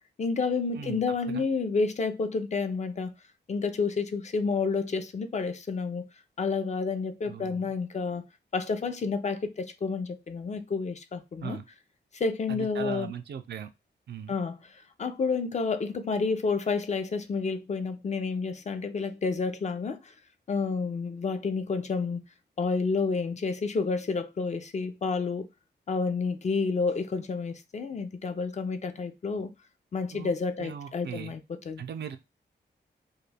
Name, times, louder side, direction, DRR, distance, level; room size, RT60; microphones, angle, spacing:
voice 1, 0.2-3.1 3.5-6.0 6.4-8.2 8.5-11.6 12.1-13.1 14.3-14.6 15.0-20.1 20.5-22.2 22.6-25.5 25.9-29.5 29.9-31.4 31.7-31.8, left 4 dB, 40° left, 0.4 m, -30 dB
voice 2, 7.3-7.7 11.4-11.7 12.5-13.7 14.1-14.3 30.1-30.3 30.6-31.3 31.8-32.2, right 8 dB, 70° right, 0.4 m, -38 dB
2.3 x 2.2 x 3.3 m
cardioid pair, 75°, 18 cm